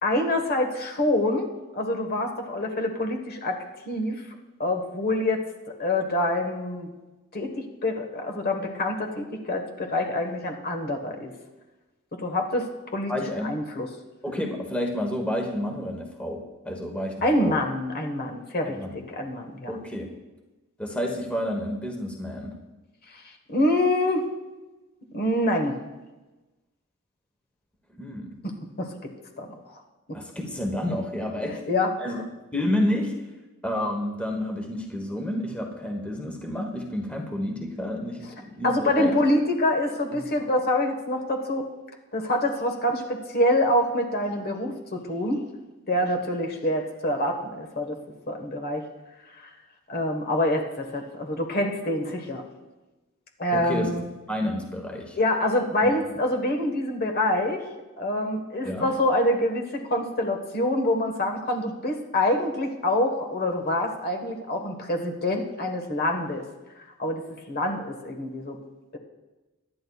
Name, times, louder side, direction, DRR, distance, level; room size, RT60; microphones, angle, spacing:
voice 1, 0.0-1.5 1.7-3.6 3.9-4.2 4.6-5.4 5.8-6.9 7.3-7.5 7.8-11.3 12.2-13.1 13.4-13.9 17.2-19.7 23.5-24.2 25.1-25.8 28.8-29.8 31.7-31.9 38.6-41.7 42.1-45.4 45.9-48.0 48.3-48.8 49.9-52.4 53.4-54.0 55.2-57.6 58.0-66.4 67.0-67.2 67.5-68.6, left 1 dB, 45° left, 3 dB, 1.4 m, -26 dB
voice 2, 13.1-13.5 14.2-17.6 18.6-18.9 19.7-20.1 20.8-22.6 27.9-28.3 30.1-31.6 32.0-32.2 32.5-33.1 33.6-39.1 40.1-40.3 53.5-53.9 54.3-55.2 55.8-55.9 58.6-58.9, left 1 dB, 5° left, 1 dB, 1.2 m, -30 dB
23.0 x 11.0 x 2.4 m, 1.1 s
head